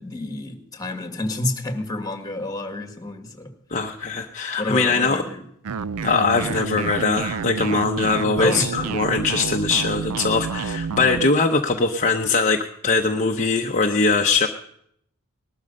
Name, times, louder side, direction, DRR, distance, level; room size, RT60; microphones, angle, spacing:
voice 1, 0.0-3.5 4.6-5.4 6.5-6.6 8.4-8.9, left 1 dB, 15° left, 5 dB, 1.7 m, -29 dB
voice 2, 3.7-5.2 6.0-14.5, left 4 dB, 35° left, 2 dB, 0.8 m, -21 dB
sound 1, 5.6-11.3, right 5 dB, 75° right, 0.5 m, -29 dB
20.0 x 12.5 x 5.4 m, 0.72 s
head